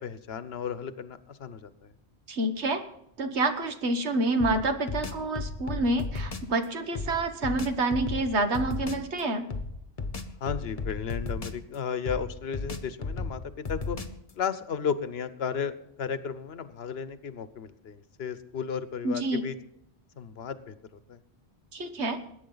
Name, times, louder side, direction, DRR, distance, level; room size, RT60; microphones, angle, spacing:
voice 1, 0.0-1.9 10.4-14.0 14.3-19.5 20.2-20.7 21.1-21.2, left 7 dB, 70° left, 13 dB, 1.1 m, -34 dB
voice 2, 2.3-2.8 3.2-9.5 19.0-19.5 21.7-22.2, right 2 dB, 85° right, 7 dB, 1.5 m, -28 dB
sound 1, 4.4-6.5 6.9-9.1 9.5-11.7 12.0-14.3, left 3 dB, 35° left, 1.0 m, -35 dB
21.0 x 9.5 x 3.9 m, 0.77 s
omnidirectional pair, 1.1 m